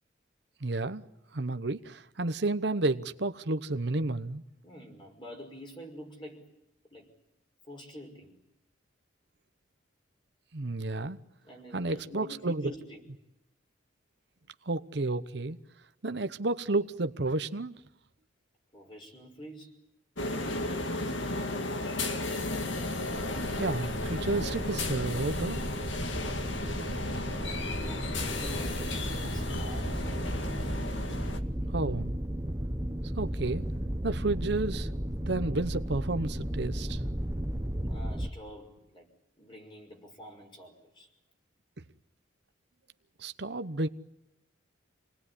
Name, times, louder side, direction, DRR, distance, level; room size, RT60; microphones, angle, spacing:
voice 1, 0.6-1.0 1.3-4.4 10.5-11.2 11.7-12.7 14.6-15.6 16.0-17.8 23.6-25.6 31.7-32.1 33.1-33.6 34.0-34.9 35.2-37.0 43.2-43.9, right 2 dB, 60° right, 0.9 m, -31 dB
voice 2, 4.6-6.5 6.9-7.1 7.6-8.4 11.4-13.0 18.7-19.8 27.6-30.1 37.8-39.1 39.4-41.1, equal, 25° left, 5.6 m, -47 dB
sound 1, 20.2-31.4, left 2 dB, 75° left, 2.0 m, -34 dB
sound 2, 22.4-38.3, equal, 15° right, 1.0 m, -35 dB
28.5 x 20.0 x 10.0 m
head